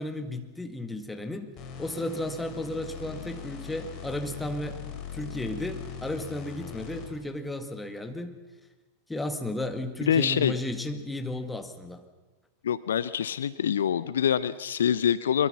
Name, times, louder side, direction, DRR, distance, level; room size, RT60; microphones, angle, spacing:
voice 1, 0.0-1.5 1.8-4.8 5.1-8.4 9.1-12.0, left 1 dB, 5° left, 7 dB, 2.0 m, -34 dB
sound 1, 1.6-7.3, left 8 dB, 35° left, 4.0 m, -41 dB
voice 2, 10.1-10.6 12.6-15.5, left 8 dB, 65° left, 17 dB, 0.6 m, -25 dB
23.5 x 22.5 x 5.8 m, 1.2 s
figure-of-eight pair, 90°, 0 cm